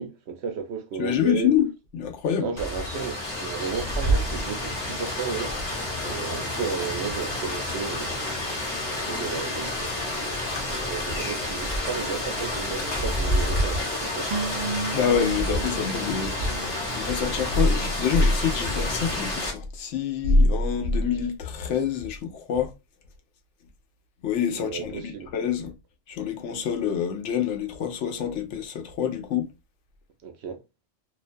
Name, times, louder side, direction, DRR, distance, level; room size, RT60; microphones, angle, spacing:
voice 1, 0.0-1.5 2.4-5.6 6.0-8.2 9.0-10.4 10.7-14.3 24.5-25.3 30.2-30.6, right 6 dB, 70° right, 0.8 m, -34 dB
voice 2, 1.0-1.7 1.9-2.5 14.9-16.3 16.9-22.7 24.2-25.7 26.1-29.5, left 5 dB, 75° left, 0.9 m, -25 dB
Rain, 2.6-19.5, left 1 dB, 40° left, 1.1 m, -29 dB
sound 1, 14.3-17.6 17.9-18.0, right 4 dB, 85° right, 0.3 m, -34 dB
2.4 x 2.2 x 2.5 m
omnidirectional pair, 1.3 m